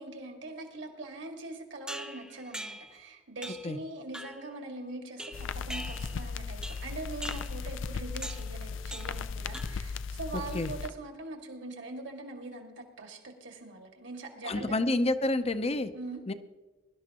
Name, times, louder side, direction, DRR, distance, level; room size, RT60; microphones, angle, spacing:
voice 1, 0.0-14.8 15.9-16.2, right 2 dB, 75° right, 2 dB, 2.1 m, -42 dB
sound 1, 1.9-3.0 3.4-3.8 4.1-4.5 5.2-6.3 6.6-6.9 7.2-7.6 8.2-8.5 8.9-9.2 9.5-10.0, right 1 dB, 5° right, 0.8 m, -42 dB
sound 2, 5.3-10.9, left 5 dB, 85° left, 0.5 m, -37 dB
voice 2, 10.3-10.7 14.4-15.9 16.3-16.4, left 2 dB, 35° left, 10 dB, 0.7 m, -29 dB
22.5 x 12.0 x 3.0 m, 1.2 s
head